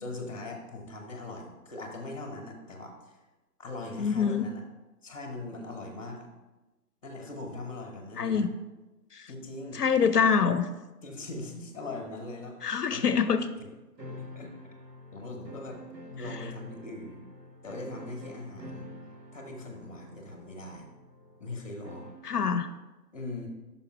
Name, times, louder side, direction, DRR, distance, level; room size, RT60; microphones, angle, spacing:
voice 1, 0.0-3.1 3.6-4.6 5.0-6.3 7.0-8.5 9.3-9.8 11.0-13.3 13.6-13.7 14.1-14.5 15.1-15.8 16.1-17.2 17.6-18.9 19.3-20.9 21.4-22.1 23.1-23.5, left 2 dB, 20° left, 3 dB, 0.7 m, -40 dB
voice 2, 4.0-4.5 8.2-8.5 9.1-9.3 9.7-10.7 12.6-13.5 16.3-16.4 22.2-22.7, left 6 dB, 70° left, 11 dB, 0.5 m, -25 dB
sound 1, 14.0-22.4, equal, 85° right, 1.0 m, -47 dB
5.6 x 5.1 x 4.5 m, 1.1 s
figure-of-eight pair, 145°, 48 cm